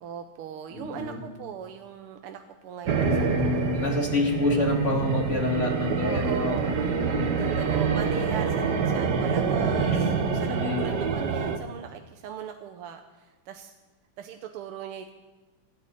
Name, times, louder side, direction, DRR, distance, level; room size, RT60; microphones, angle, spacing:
voice 1, 0.0-3.9 6.0-6.8 7.1-13.7 14.2-15.1, right 8 dB, 85° right, 5 dB, 1.7 m, -39 dB
voice 2, 0.7-1.2 2.9-7.4 9.9-10.0 10.3-11.1, left 2 dB, 35° left, 1 dB, 2.4 m, -28 dB
sound 1, 2.9-11.6, right 5 dB, 55° right, 1.6 m, -26 dB
25.0 x 11.0 x 4.1 m, 1.2 s
omnidirectional pair, 2.4 m